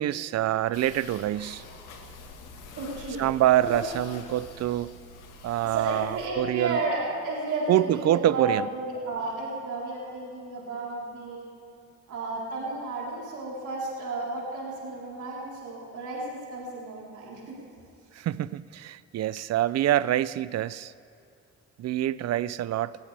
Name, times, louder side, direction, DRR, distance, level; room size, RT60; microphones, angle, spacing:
voice 1, 0.0-1.6 3.2-4.9 5.4-6.8 7.7-8.7 18.1-20.9 21.8-23.0, right 13 dB, 60° right, 18 dB, 0.5 m, -26 dB
sound 1, 0.7-6.3, left 3 dB, 90° left, 1.7 m, -46 dB
voice 2, 2.7-3.2 3.6-3.9 5.7-11.5 12.1-17.6, right 2 dB, 80° right, -5 dB, 4.0 m, -33 dB
20.0 x 16.0 x 3.4 m, 2.6 s
cardioid pair, 90°, 30 cm